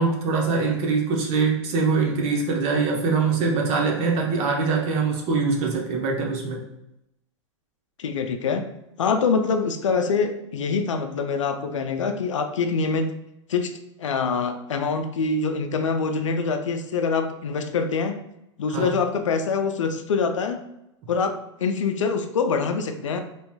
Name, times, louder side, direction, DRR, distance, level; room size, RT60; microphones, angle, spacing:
voice 1, 0.0-6.6 18.7-18.9, right 4 dB, 40° right, 0 dB, 0.8 m, -23 dB
voice 2, 8.0-8.6 9.0-13.1 13.5-13.7 14.0-18.2 18.6-20.6 21.1-23.2, left 5 dB, 80° left, 6 dB, 0.4 m, -25 dB
3.0 x 2.9 x 2.2 m, 0.86 s
hypercardioid pair, 105°, 16 cm